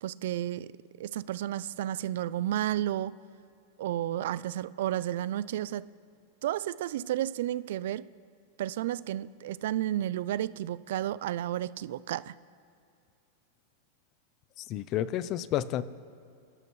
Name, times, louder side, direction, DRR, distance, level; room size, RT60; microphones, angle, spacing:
voice 1, 0.0-0.7 1.0-3.1 3.8-5.9 6.4-8.1 8.6-12.3, right 12 dB, 65° right, 18 dB, 0.4 m, -32 dB
voice 2, 14.6-15.8, left 12 dB, 30° left, 16 dB, 0.4 m, -30 dB
27.5 x 12.5 x 3.1 m, 2.5 s
supercardioid pair, 165°, 0 cm